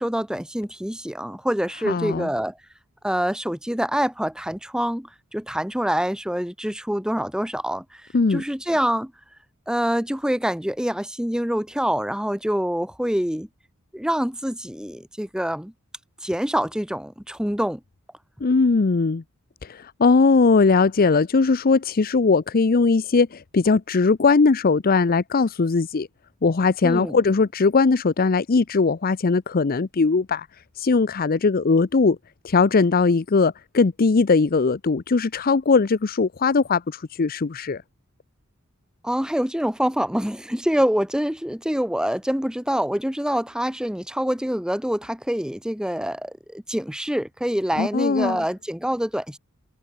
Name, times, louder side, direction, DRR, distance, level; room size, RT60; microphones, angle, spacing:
voice 1, 0.0-2.5 3.0-7.8 8.3-9.1 9.7-13.5 13.9-15.7 16.2-17.8 26.8-27.2 39.0-49.4, equal, 5° right, 1.7 m, -25 dB
voice 2, 1.8-2.3 8.1-8.4 18.4-19.2 19.6-26.1 26.4-30.5 30.8-32.2 32.4-37.8 47.8-48.4, left 4 dB, 45° left, 0.6 m, -20 dB
head